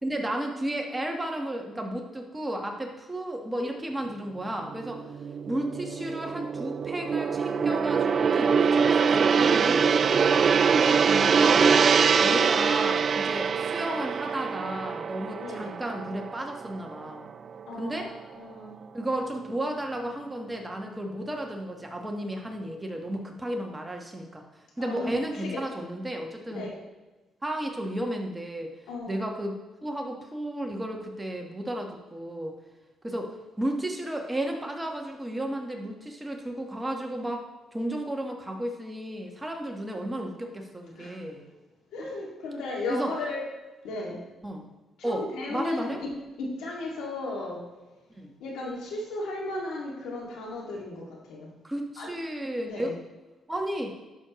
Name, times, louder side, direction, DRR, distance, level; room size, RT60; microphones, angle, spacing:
voice 1, 0.0-5.0 5.5-11.7 12.2-17.3 17.8-18.1 18.9-24.4 24.8-26.7 27.4-28.7 29.1-32.5 33.0-37.4 37.7-41.4 42.9-43.1 44.4-44.7 45.0-46.0 48.2-48.3 51.6-53.0 53.5-54.0, right 1 dB, 15° right, 2 dB, 1.4 m, -33 dB
Gong, 4.7-17.2 17.5-17.8, right 6 dB, 45° right, 0.3 m, -24 dB
voice 2, 15.4-15.7 17.7-18.1 18.4-18.7 24.8-25.1 25.4-25.6 26.5-26.7 28.9-29.2 40.9-41.2 41.9-43.4 43.8-44.2 45.0-47.6 48.4-51.0 51.3-51.5 52.0-52.1 52.6-52.9, left 2 dB, 85° left, -2 dB, 2.3 m, -35 dB
11.5 x 6.4 x 3.1 m, 1.2 s
cardioid pair, 90°, 0 cm